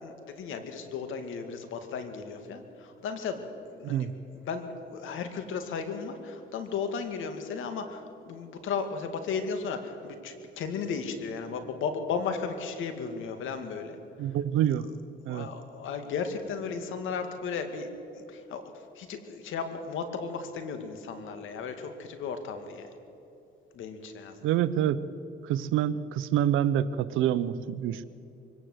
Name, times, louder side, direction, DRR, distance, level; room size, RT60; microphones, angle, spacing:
voice 1, 0.0-4.1 4.3-14.0 15.3-17.9 18.1-18.6 19.0-22.9 23.7-24.5, left 5 dB, 80° left, 7 dB, 2.3 m, -35 dB
voice 2, 14.2-14.9 15.3-15.5 24.4-25.0 25.4-28.0, right 10 dB, 90° right, 15 dB, 0.8 m, -27 dB
24.0 x 17.5 x 8.0 m, 2.8 s
cardioid pair, 90°, 20 cm